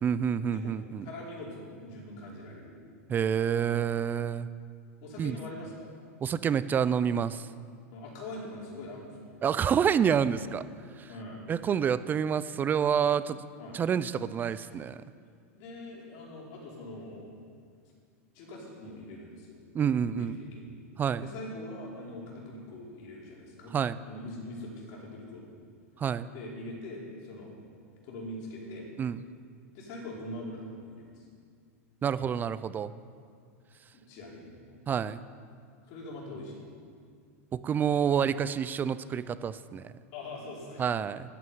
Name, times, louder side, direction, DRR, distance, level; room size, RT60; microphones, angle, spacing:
voice 1, 0.0-1.1 3.1-4.5 5.2-5.3 6.2-7.5 9.4-10.7 11.0-11.1 11.5-13.4 13.7-15.0 19.7-20.4 21.0-21.3 23.7-24.0 26.0-26.3 29.0-29.2 32.0-32.9 34.9-35.2 37.6-39.9 40.8-41.2, right 8 dB, 20° right, 15 dB, 0.5 m, -28 dB
voice 2, 1.0-2.8 5.0-5.9 7.9-9.4 11.1-11.5 13.6-13.8 14.4-14.8 15.5-17.6 18.3-19.6 19.9-20.8 21.2-25.4 26.3-27.6 28.0-28.9 29.7-31.2 33.9-34.6 35.9-36.6 40.1-41.0, left 1 dB, 50° left, -3 dB, 5.1 m, -43 dB
13.0 x 9.6 x 9.3 m, 2.2 s
supercardioid pair, 130°, 8 cm